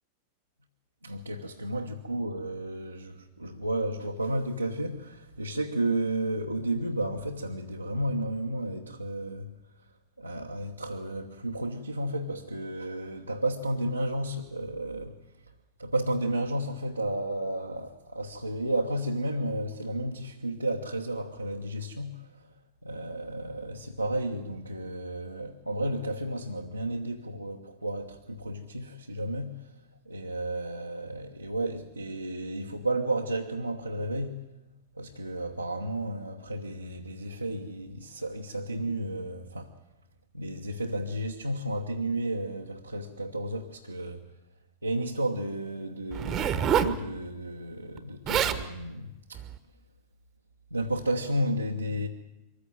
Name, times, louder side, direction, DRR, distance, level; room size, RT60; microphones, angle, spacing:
voice 1, 1.0-9.5 9.8-9.9 10.2-15.2 15.8-22.5 22.8-29.7 30.0-34.4 34.9-39.7 40.3-44.3 44.8-49.4 50.7-52.1, right 1 dB, 85° right, 1.1 m, -32 dB
Zipper (clothing), 46.1-47.0 48.0-48.1 48.3-48.6 49.3-49.6, right 8 dB, 30° right, 1.2 m, -26 dB
23.5 x 15.0 x 8.9 m
figure-of-eight pair, 90°, 0 cm